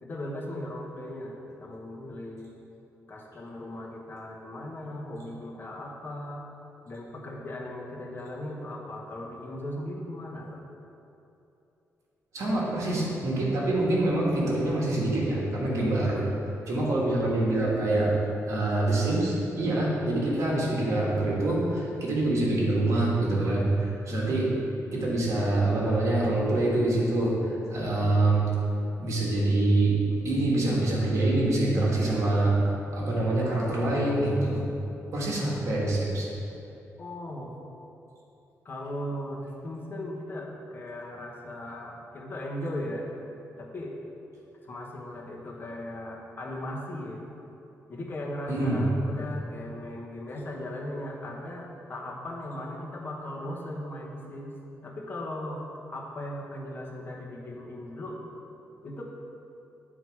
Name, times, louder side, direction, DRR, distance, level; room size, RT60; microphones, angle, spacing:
voice 1, 0.0-2.5 3.1-6.5 6.8-10.6 24.2-24.4 25.0-25.1 37.0-37.5 38.6-43.1 43.6-44.0 44.6-47.2 47.9-55.6 55.9-58.3 58.8-59.0, left 1 dB, 40° left, -2 dB, 1.2 m, -38 dB
voice 2, 12.3-16.2 16.7-18.1 18.5-24.5 24.9-28.5 29.0-32.6 32.9-34.6 35.1-36.3 48.5-48.8, right 2 dB, 65° right, -4 dB, 1.6 m, -25 dB
9.4 x 3.9 x 4.7 m, 2.8 s
cardioid pair, 115°, 6 cm